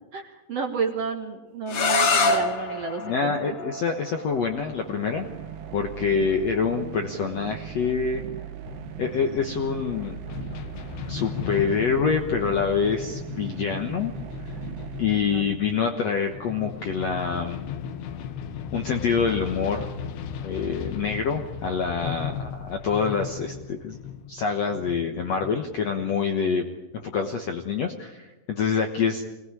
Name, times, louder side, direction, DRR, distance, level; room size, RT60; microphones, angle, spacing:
voice 1, 0.1-3.6 15.3-15.4, right 5 dB, 50° right, 4 dB, 2.0 m, -31 dB
sound 1, 1.7-7.4, left 3 dB, 50° left, 2.7 m, -28 dB
voice 2, 3.0-5.3 5.7-8.2 9.0-10.2 11.1-14.1 15.0-17.6 18.7-19.9 20.4-24.0 24.3-26.6 27.0-29.2, left 5 dB, 65° left, 5 dB, 1.7 m, -26 dB
sound 2, 4.3-16.1, right 11 dB, 85° right, 3.3 m, -39 dB
sound 3, 8.6-26.2, left 8 dB, 80° left, 3.4 m, -37 dB
24.0 x 19.0 x 9.7 m, 1.1 s
omnidirectional pair, 4.6 m